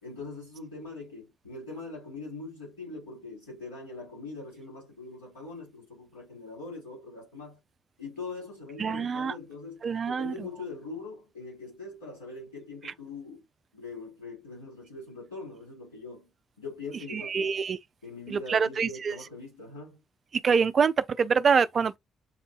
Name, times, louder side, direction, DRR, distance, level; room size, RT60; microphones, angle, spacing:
voice 1, 0.0-7.6 8.0-13.4 13.7-16.3 16.6-17.6 18.0-20.0, left 3 dB, 85° left, 2.9 m, -42 dB
voice 2, 8.8-9.3 9.8-10.3 17.1-17.8 18.3-19.1 20.4-22.0, right 6 dB, 45° right, 0.4 m, -25 dB
7.8 x 2.6 x 2.3 m
figure-of-eight pair, 45°, 0 cm